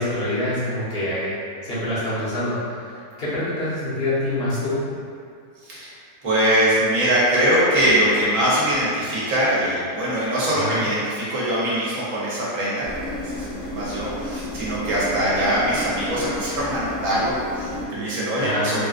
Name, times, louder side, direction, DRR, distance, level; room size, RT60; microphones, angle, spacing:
voice 1, 0.0-1.3 1.6-2.8 3.2-4.8 10.5-10.8 18.4-18.9, left 1 dB, 45° left, -11 dB, 1.1 m, -25 dB
voice 2, 5.6-5.9 6.2-18.9, right 1 dB, 60° right, -8 dB, 1.2 m, -22 dB
sound 1, 12.8-17.8, left 2 dB, 65° left, 1.2 m, -32 dB
3.7 x 2.3 x 2.4 m, 2.3 s
omnidirectional pair, 1.6 m